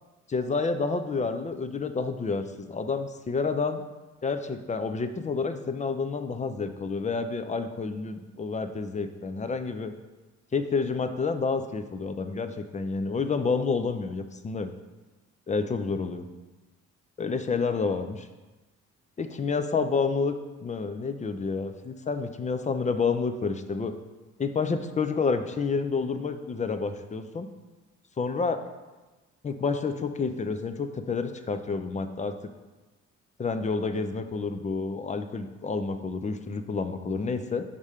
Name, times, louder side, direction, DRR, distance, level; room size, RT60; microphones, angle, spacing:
voice 1, 0.3-3.8 4.2-9.9 10.5-14.7 15.5-16.2 17.2-18.3 19.2-20.4 20.6-23.9 24.4-27.5 28.2-28.6 29.4-32.3 33.4-37.6, left 4 dB, 25° left, 8 dB, 0.4 m, -29 dB
4.9 x 3.6 x 5.5 m, 1.2 s
cardioid pair, 90°, 30 cm